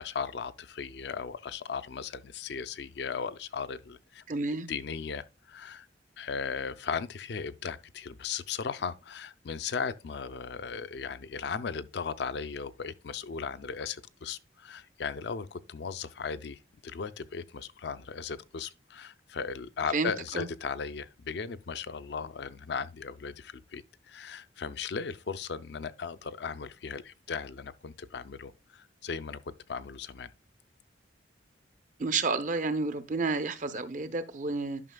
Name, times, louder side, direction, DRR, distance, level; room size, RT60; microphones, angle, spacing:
voice 1, 0.0-4.2 4.7-5.9 6.2-29.4 29.7-30.3, left 5 dB, 65° left, 0.4 m, -37 dB
voice 2, 4.3-4.7 19.9-20.5 32.0-34.8, right 3 dB, 40° right, 0.6 m, -30 dB
11.0 x 5.6 x 2.2 m
head